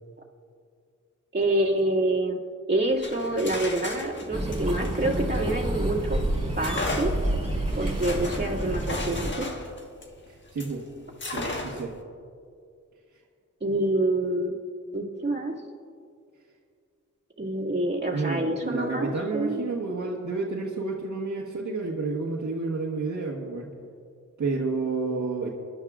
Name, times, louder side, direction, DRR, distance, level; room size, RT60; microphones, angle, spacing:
voice 1, 1.3-2.4 2.7-6.2 6.6-7.1 7.7-9.5 13.6-14.6 14.9-15.5 17.4-19.6, right 1 dB, 30° right, -3 dB, 2.2 m, -27 dB
sound 1, 2.9-6.0 6.6-10.8 11.2-12.0, left 2 dB, 35° left, 1.5 m, -35 dB
sound 2, 4.3-9.3, right 1 dB, 15° right, 3.6 m, -29 dB
voice 2, 10.3-10.8 11.3-11.9 18.1-23.7 24.4-25.5, right 3 dB, 60° right, -5 dB, 1.6 m, -30 dB
24.5 x 11.5 x 2.5 m, 2.3 s
cardioid pair, 75°, 32 cm